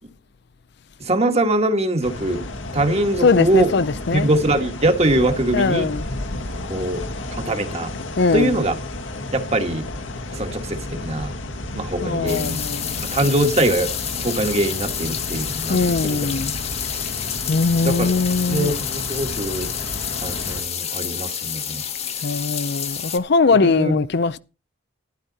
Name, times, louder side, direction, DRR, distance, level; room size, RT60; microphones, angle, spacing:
voice 1, 1.0-2.4 2.7-3.7 4.1-5.9 6.7-7.0 7.4-7.9 8.3-8.8 9.3-9.8 10.3-11.3 11.7-12.6 13.0-13.9 14.2-16.2 17.8-18.1 18.5-19.7 20.2-21.8 23.6-24.0, right 1 dB, 30° right, 1.6 m, -22 dB
sound 1, 2.0-20.6, left 2 dB, 70° left, 1.6 m, -32 dB
voice 2, 3.2-4.3 5.5-6.0 8.2-8.5 12.0-13.1 15.7-16.5 17.5-18.8 22.2-24.4, left 4 dB, 55° left, 0.5 m, -20 dB
sound 2, 12.3-23.2, left 8 dB, 30° left, 1.1 m, -29 dB
12.5 x 11.5 x 4.1 m
head